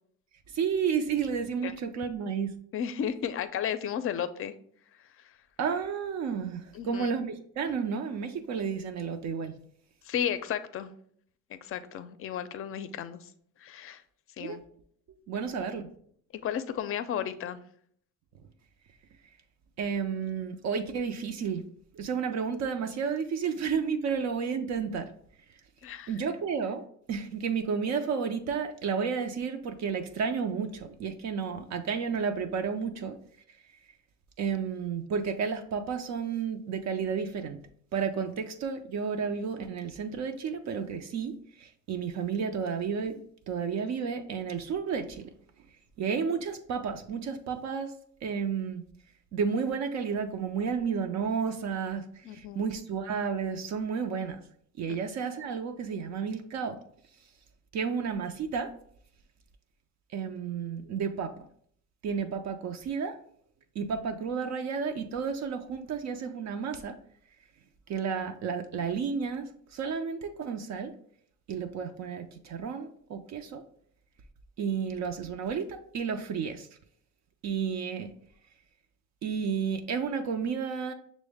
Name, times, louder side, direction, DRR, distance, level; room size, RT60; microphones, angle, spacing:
voice 1, 0.5-2.5 5.6-7.3 7.6-9.5 14.4-14.6 15.1-15.9 19.8-21.6 21.9-25.1 26.1-33.2 34.4-37.6 37.9-43.2 43.5-45.3 46.0-47.9 48.2-48.8 49.3-54.4 54.8-56.8 57.7-58.7 60.1-61.3 62.0-63.2 63.8-67.0 67.9-70.9 71.5-73.6 74.6-76.7 77.4-78.1 79.2-80.9, right 6 dB, 65° right, 6 dB, 0.5 m, -32 dB
voice 2, 2.7-4.5 6.7-7.1 10.0-10.9 11.5-13.3 13.6-14.0 14.4-14.6 16.4-17.6 25.8-26.1 52.2-52.7 54.9-55.0, left 9 dB, 45° left, 12 dB, 0.4 m, -33 dB
6.1 x 2.1 x 3.4 m, 0.62 s
cardioid pair, 90°, 30 cm